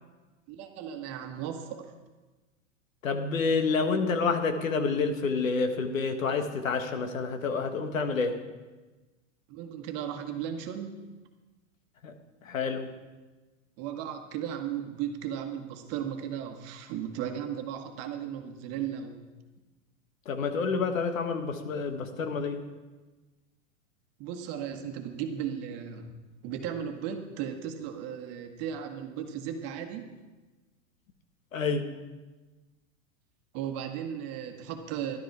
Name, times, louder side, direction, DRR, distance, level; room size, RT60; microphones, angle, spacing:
voice 1, 0.5-1.9 9.5-11.1 13.8-19.2 24.2-26.1 26.4-30.2 33.5-35.2, right 9 dB, 40° right, 6 dB, 1.3 m, -36 dB
voice 2, 3.0-8.4 12.0-12.1 12.4-12.9 20.3-22.6 31.5-31.8, left 4 dB, 90° left, 7 dB, 1.5 m, -28 dB
11.5 x 10.5 x 4.7 m, 1.2 s
hypercardioid pair, 130°, 39 cm